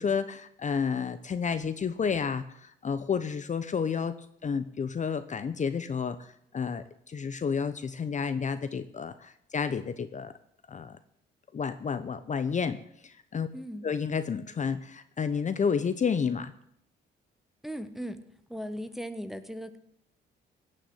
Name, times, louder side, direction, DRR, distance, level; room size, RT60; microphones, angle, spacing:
voice 1, 0.0-4.1 4.4-10.3 10.7-11.0 11.5-12.8 13.0-13.5 13.8-16.5, left 6 dB, 40° left, 12 dB, 0.8 m, -30 dB
voice 2, 13.5-13.9 17.6-18.2 18.5-19.8, equal, ahead, 10 dB, 1.3 m, -37 dB
17.0 x 6.7 x 7.8 m, 0.73 s
cardioid pair, 90°, 20 cm